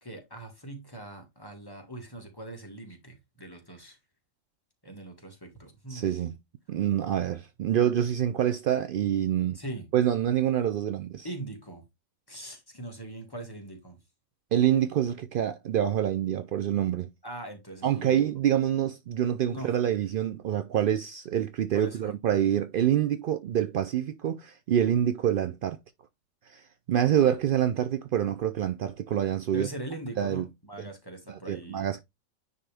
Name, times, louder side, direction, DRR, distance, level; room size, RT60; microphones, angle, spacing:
voice 1, 0.0-4.0 4.8-6.0 9.5-9.9 11.2-11.8 12.3-14.0 15.1-15.2 17.2-18.2 19.4-19.7 21.7-22.1 27.0-27.4 29.5-32.0, right 2 dB, 15° left, 1.7 m, -41 dB
voice 2, 5.9-6.3 6.7-9.6 9.9-11.3 14.5-17.1 17.8-25.8 26.5-29.7 30.2-30.5 31.3-32.0, right 10 dB, 85° right, 0.4 m, -26 dB
9.6 x 3.5 x 3.4 m
omnidirectional pair, 1.4 m